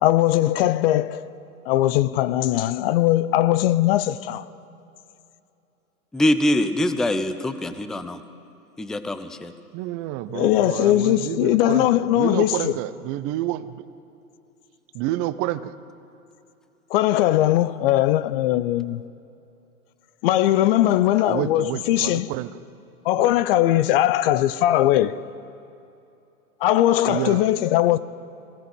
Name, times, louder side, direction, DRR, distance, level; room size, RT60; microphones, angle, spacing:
voice 1, 0.0-1.2 1.6-4.5 10.3-12.7 16.9-19.0 20.2-22.3 23.0-25.2 26.6-28.0, left 14 dB, 40° left, 0.8 m, -20 dB
voice 2, 6.1-8.2 8.8-9.5, left 1 dB, ahead, 0.5 m, -23 dB
voice 3, 9.7-13.8 14.9-15.8 21.3-22.6 23.2-23.3 27.1-27.5, right 14 dB, 30° right, 0.9 m, -29 dB
24.0 x 17.0 x 8.0 m
hypercardioid pair, 115°, 45 cm